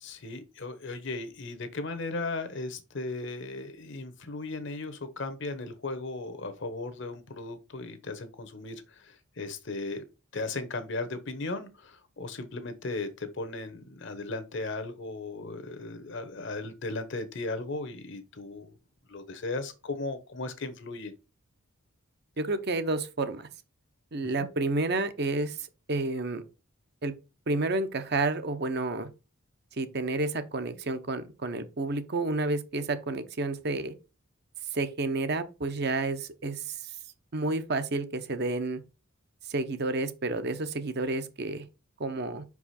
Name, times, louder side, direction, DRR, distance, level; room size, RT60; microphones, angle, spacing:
voice 1, 0.0-10.0 10.3-18.7 19.1-21.1, left 3 dB, 55° left, 0.9 m, -36 dB
voice 2, 22.4-23.5 24.1-26.4 27.0-27.1 27.5-29.1 29.8-33.9 34.7-37.0 37.3-38.8 39.4-41.6 42.0-42.4, right 2 dB, 50° right, 0.7 m, -30 dB
5.5 x 4.8 x 4.2 m
head